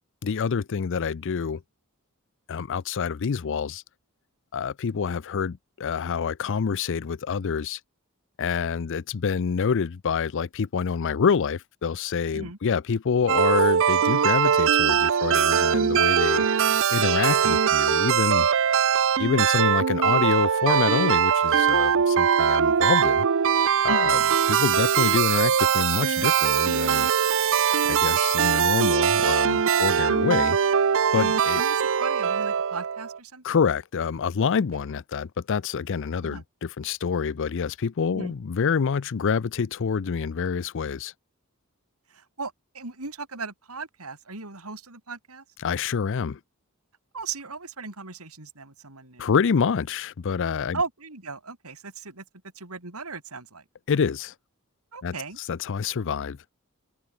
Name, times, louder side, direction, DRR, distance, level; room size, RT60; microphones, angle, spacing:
voice 1, 0.2-1.6 2.5-3.8 4.5-7.8 8.4-16.5 16.9-18.5 19.2-23.3 23.8-24.2 24.5-27.1 27.8-30.6 31.1-31.6 33.4-41.1 45.6-46.4 49.2-50.8 53.9-54.3 55.0-56.4, left 6 dB, 60° left, 0.5 m, -26 dB
sound 1, 13.3-33.2, right 7 dB, 65° right, 0.6 m, -21 dB
voice 2, 23.9-24.3 31.5-33.4 36.2-36.4 38.1-38.3 42.1-45.4 47.1-49.3 50.7-52.2 52.6-53.6 54.9-55.4, right 4 dB, 80° right, 4.0 m, -37 dB
head